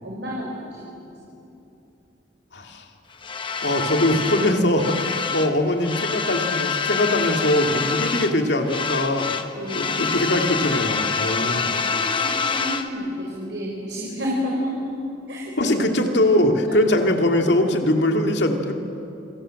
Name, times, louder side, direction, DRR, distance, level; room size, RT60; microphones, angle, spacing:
voice 1, 0.0-1.0 9.5-9.9 11.5-14.9 15.3-15.8, equal, 80° right, -3 dB, 5.0 m, -30 dB
voice 2, 2.5-2.8 3.6-9.3 9.7-11.8 15.6-18.7, left 1 dB, 70° left, 4 dB, 2.5 m, -21 dB
sound 1, 3.2-5.5 5.8-8.4 8.7-12.9, left 5 dB, 30° left, 1.2 m, -26 dB
28.0 x 23.5 x 7.7 m, 2.7 s
head